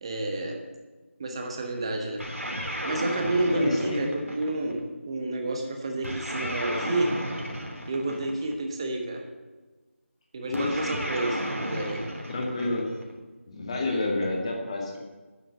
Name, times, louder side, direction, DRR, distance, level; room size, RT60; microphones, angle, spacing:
voice 1, 0.0-0.6 1.2-2.3 2.8-7.1 7.9-9.3 10.3-12.0 13.7-14.1, right 2 dB, 25° right, 3 dB, 1.2 m, -30 dB
sound 1, 2.2-4.8 6.0-8.6 10.5-13.1, equal, 90° right, 3.4 m, -33 dB
voice 2, 3.5-4.1 10.5-10.7 12.3-12.9 13.5-15.0, left 2 dB, 25° left, -1 dB, 2.2 m, -29 dB
9.8 x 7.8 x 7.7 m, 1.3 s
figure-of-eight pair, 165°, 7 cm